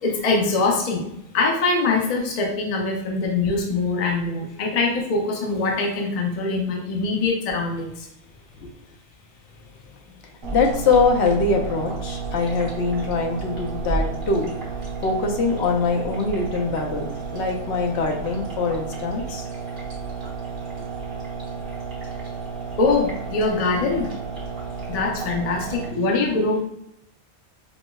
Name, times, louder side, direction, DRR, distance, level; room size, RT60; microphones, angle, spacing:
voice 1, 0.0-7.9 22.8-24.1 24.9-26.6, left 3 dB, 45° left, 1 dB, 0.5 m, -23 dB
sound 1, 10.4-25.9, right 4 dB, 60° right, 1.2 m, -32 dB
voice 2, 10.5-14.5 15.0-19.5 25.9-26.0, left 4 dB, 75° left, 2 dB, 0.9 m, -23 dB
5.2 x 2.0 x 2.2 m, 0.78 s
omnidirectional pair, 1.2 m